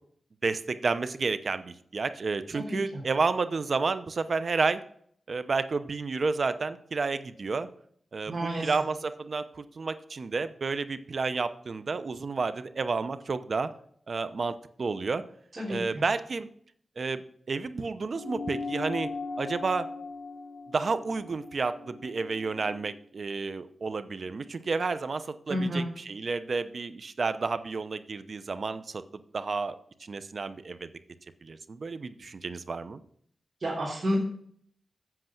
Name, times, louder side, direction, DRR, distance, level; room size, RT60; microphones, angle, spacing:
voice 1, 0.4-4.8 5.3-7.7 8.1-13.7 14.1-15.2 15.7-16.5 17.0-19.1 19.4-19.9 20.7-29.0 29.3-30.9 31.4-33.0, right 4 dB, 55° right, 12 dB, 0.8 m, -31 dB
voice 2, 2.5-3.0 8.3-8.7 15.5-16.0 25.5-25.8 33.6-34.2, equal, 40° right, -6 dB, 3.3 m, -31 dB
sound 1, 18.1-22.9, left 3 dB, 60° left, 2.3 m, -39 dB
8.0 x 7.5 x 5.9 m, 0.62 s
cardioid pair, 65°, 0 cm